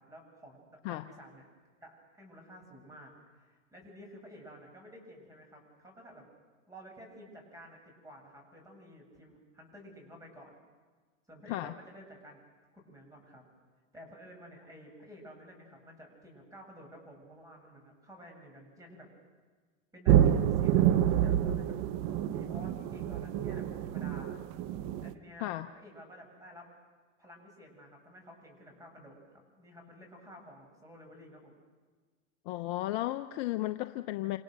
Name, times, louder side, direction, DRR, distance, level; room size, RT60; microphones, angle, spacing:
voice 1, 0.0-1.4 1.8-6.2 6.7-10.6 11.3-12.4 12.7-13.4 13.9-19.1 19.9-21.8 22.3-24.5 25.0-26.7 27.2-31.6, equal, 10° right, 1 dB, 7.7 m, -52 dB
sound 1, 20.1-25.1, right 10 dB, 40° right, 1.1 m, -27 dB
voice 2, 32.4-34.4, left 16 dB, 40° left, 9 dB, 0.8 m, -34 dB
27.5 x 27.5 x 6.7 m, 1.4 s
hypercardioid pair, 125°, 40 cm